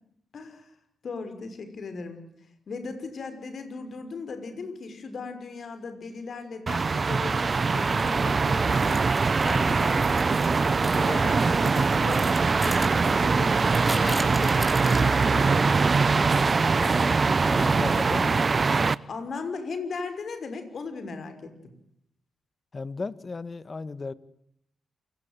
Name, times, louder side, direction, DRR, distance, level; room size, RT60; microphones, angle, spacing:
voice 1, 0.3-0.7 1.0-2.2 2.7-9.1 9.4-10.6 11.0-14.5 14.9-15.8 19.1-21.7, left 4 dB, 60° left, 9 dB, 6.0 m, -37 dB
sound 1, 6.7-18.9, right 4 dB, 45° right, 0.9 m, -22 dB
sound 2, 8.6-15.5, equal, 5° left, 5.5 m, -39 dB
voice 2, 16.6-18.4 22.7-24.1, left 3 dB, 40° left, 16 dB, 1.8 m, -35 dB
28.0 x 19.0 x 9.2 m, 0.75 s
hypercardioid pair, 40°, 0 cm